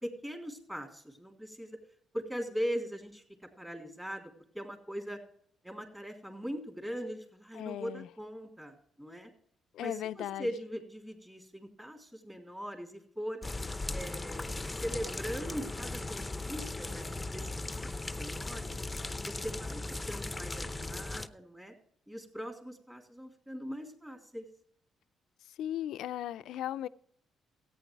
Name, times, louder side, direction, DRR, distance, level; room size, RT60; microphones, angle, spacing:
voice 1, 0.0-1.8 2.1-3.2 3.6-5.2 5.6-9.3 9.8-13.4 13.9-18.8 19.2-19.8 20.1-21.7 22.1-24.4, equal, 10° right, 3.1 m, -40 dB
voice 2, 7.5-8.1 9.7-10.5 25.5-26.9, left 12 dB, 80° left, 0.4 m, -37 dB
sound 1, 13.4-21.3, left 2 dB, 15° left, 0.7 m, -38 dB
14.0 x 9.1 x 4.6 m
cardioid pair, 90°, 0 cm